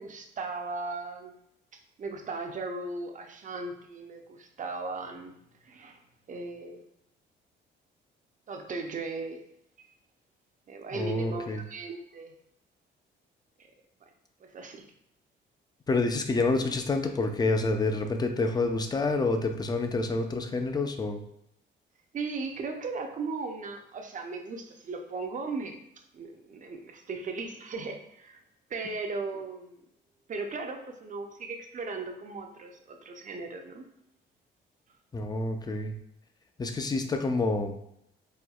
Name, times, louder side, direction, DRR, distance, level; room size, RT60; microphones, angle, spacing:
voice 1, 0.0-1.3 2.0-5.3 5.6-6.0 6.3-6.9 8.5-9.4 10.7-12.3 14.0-14.1 14.4-14.8 22.1-25.8 26.1-28.4 28.7-29.8 30.3-33.9, right 3 dB, 40° right, 4 dB, 0.6 m, -37 dB
voice 2, 10.9-11.6 15.9-21.2 35.1-36.0 36.6-37.8, left 3 dB, 20° left, 6 dB, 0.4 m, -28 dB
4.2 x 2.2 x 2.3 m, 0.76 s
cardioid pair, 90°, 20 cm